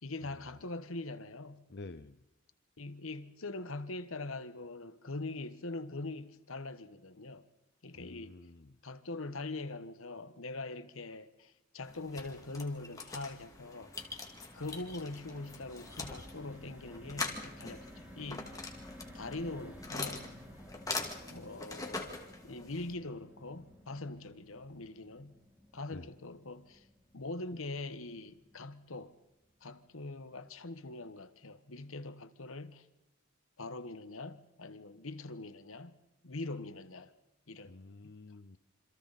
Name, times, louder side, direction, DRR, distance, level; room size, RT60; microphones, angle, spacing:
voice 1, 0.0-1.7 2.8-7.4 7.8-8.4 8.8-13.9 14.5-18.6 19.1-20.3 21.3-22.1 22.4-25.4 25.7-26.9 27.1-29.1 29.6-32.9 33.6-36.0 36.2-37.1 37.5-37.7, left 2 dB, 75° left, 1.3 m, -42 dB
voice 2, 1.7-2.2 8.0-8.7 25.9-26.1 37.7-38.6, left 2 dB, 50° left, 0.6 m, -49 dB
sound 1, 11.8-22.9, left 3 dB, 15° left, 2.3 m, -43 dB
sound 2, 13.1-29.3 29.7-29.8 30.1-30.3, equal, 10° right, 3.8 m, -54 dB
27.5 x 26.5 x 4.2 m
head